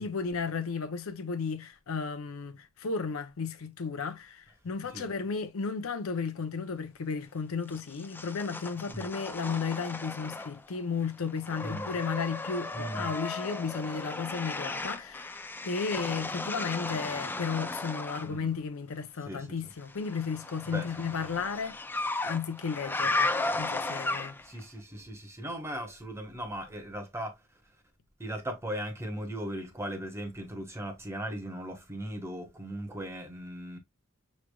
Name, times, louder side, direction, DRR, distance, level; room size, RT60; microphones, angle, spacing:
voice 1, 0.0-21.8 22.2-24.4, left 5 dB, 70° left, 0.6 m, -34 dB
sound 1, 7.7-10.8 11.0-18.3 19.9-24.6, left 2 dB, 10° left, 0.3 m, -35 dB
voice 2, 11.6-11.9 12.7-13.1 18.2-18.5 19.3-19.6 20.7-20.9 24.4-27.3 28.2-33.8, right 1 dB, 15° right, 1.0 m, -38 dB
5.9 x 3.2 x 2.2 m
head